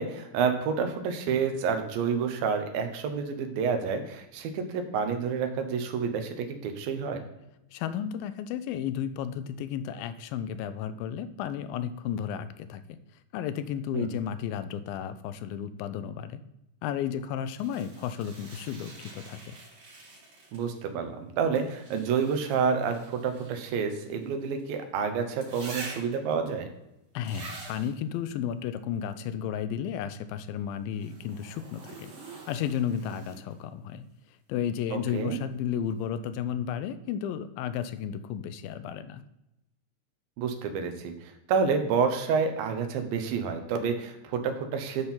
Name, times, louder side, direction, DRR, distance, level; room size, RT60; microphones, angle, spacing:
voice 1, 0.0-7.2 13.9-14.1 20.5-26.7 34.9-35.4 40.4-45.1, right 6 dB, 85° right, 6 dB, 2.8 m, -29 dB
voice 2, 7.7-12.8 13.3-16.4 16.8-19.6 27.1-34.0 34.5-39.2, left 9 dB, 90° left, 12 dB, 2.4 m, -33 dB
sound 1, 17.6-20.8 21.5-24.7 25.4-26.3 27.2-27.9 30.9-33.6 35.5-35.6, right 3 dB, 60° right, 4.3 m, -46 dB
9.9 x 4.4 x 5.5 m, 0.90 s
omnidirectional pair, 4.0 m